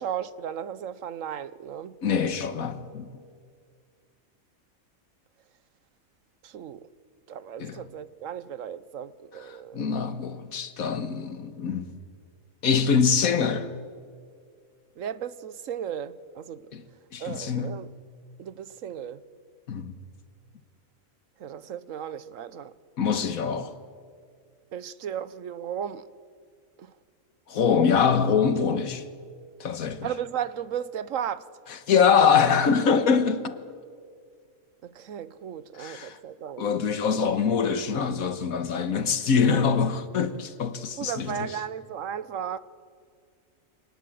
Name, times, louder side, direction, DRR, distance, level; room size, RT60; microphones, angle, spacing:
voice 1, 0.0-2.0 6.4-6.9 7.3-9.9 15.0-16.7 17.2-17.9 18.4-19.2 21.4-22.7 24.7-26.1 26.8-27.0 30.0-31.5 32.2-32.4 34.8-36.6 41.0-42.6, right 9 dB, 70° right, 1.2 m, -35 dB
voice 2, 2.0-3.2 7.6-7.8 9.7-11.9 12.6-13.7 16.7-16.8 17.1-17.8 19.7-19.9 23.0-23.7 27.5-29.0 29.6-30.1 31.9-33.6 35.8-36.2 36.6-41.6, left 6 dB, 85° left, 1.7 m, -24 dB
25.5 x 19.0 x 7.6 m
omnidirectional pair, 1.4 m